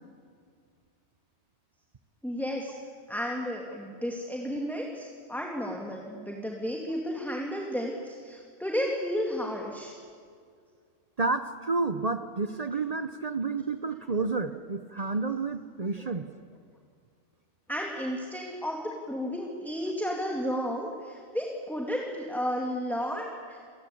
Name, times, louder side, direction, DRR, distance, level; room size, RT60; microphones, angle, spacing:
voice 1, 2.2-2.7 3.1-9.9 16.0-16.1 17.7-23.6, equal, ahead, 0 dB, 2.5 m, -33 dB
voice 2, 11.2-16.3, right 3 dB, 35° right, 10 dB, 0.9 m, -30 dB
28.0 x 20.0 x 8.5 m, 2.2 s
omnidirectional pair, 1.2 m